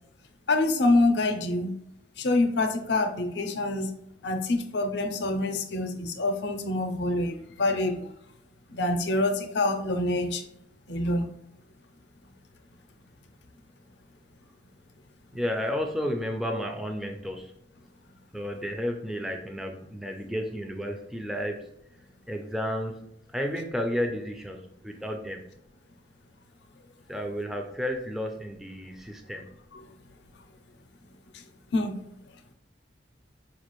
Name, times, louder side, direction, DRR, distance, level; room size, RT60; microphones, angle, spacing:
voice 1, 0.5-1.8 2.2-3.9 4.2-8.1 8.7-10.4 10.9-11.3 31.3-31.4 31.7-32.0, left 2 dB, 70° left, 6 dB, 0.5 m, -26 dB
voice 2, 15.3-17.5 18.3-21.7 22.3-25.4 27.1-29.5, equal, ahead, 2 dB, 0.4 m, -32 dB
5.0 x 2.4 x 3.0 m, 0.75 s
head